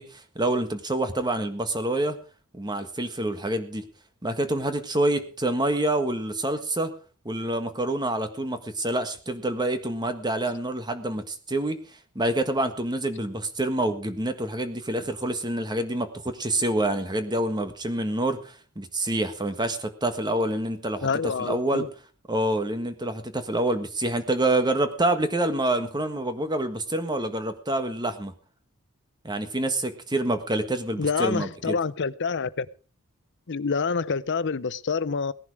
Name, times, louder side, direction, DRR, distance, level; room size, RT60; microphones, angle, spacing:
voice 1, 0.0-2.2 2.5-3.8 4.2-6.9 7.2-11.8 12.1-21.8 22.3-28.3 29.2-31.8, right 1 dB, 20° right, 1.6 m, -27 dB
voice 2, 21.0-21.9 31.0-32.7 33.5-35.3, left 5 dB, 55° left, 0.7 m, -27 dB
18.0 x 11.0 x 4.8 m
head